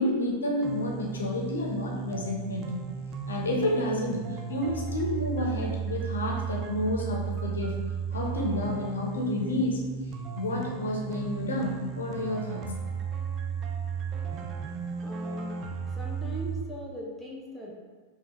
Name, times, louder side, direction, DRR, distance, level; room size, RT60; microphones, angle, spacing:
voice 1, 0.0-2.8 3.3-7.8 8.1-9.8 10.4-12.6, left 1 dB, 70° left, -1 dB, 0.7 m, -30 dB
sound 1, 0.6-16.6, right 6 dB, 35° right, 0.4 m, -35 dB
voice 2, 15.0-15.6 15.9-17.7, left 1 dB, 5° right, -4 dB, 0.8 m, -39 dB
5.3 x 2.4 x 2.9 m, 1.4 s
figure-of-eight pair, 90°, 0 cm